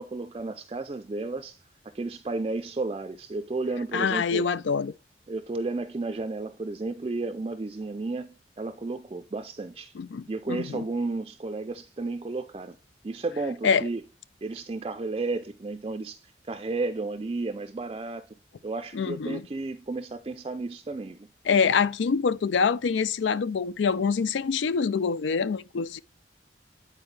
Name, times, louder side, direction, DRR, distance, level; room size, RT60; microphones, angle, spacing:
voice 1, 0.0-1.6 1.9-4.5 5.3-9.9 10.3-12.8 13.0-14.0 14.4-18.3 18.6-21.3, right 3 dB, 30° right, 0.4 m, -33 dB
voice 2, 3.9-4.9 10.0-10.8 13.6-13.8 18.9-19.4 21.5-26.0, left 6 dB, 90° left, 0.4 m, -25 dB
9.8 x 4.3 x 3.2 m
head